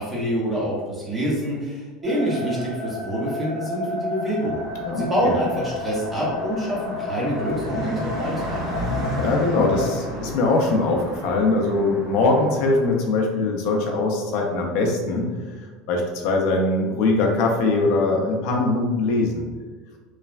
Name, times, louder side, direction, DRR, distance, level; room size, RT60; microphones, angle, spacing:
voice 1, 0.0-4.6 4.9-8.6, equal, 10° right, -6 dB, 0.8 m, -26 dB
sound 1, 2.0-9.9, left 2 dB, 75° right, 1.5 m, -32 dB
Car passing by, 4.4-13.0, equal, 45° right, 1.2 m, -33 dB
voice 2, 4.8-5.3 9.1-15.3 15.9-19.4, left 3 dB, 60° left, 1 dB, 0.5 m, -22 dB
3.1 x 2.1 x 2.4 m, 1.4 s
cardioid pair, 160°, 0 cm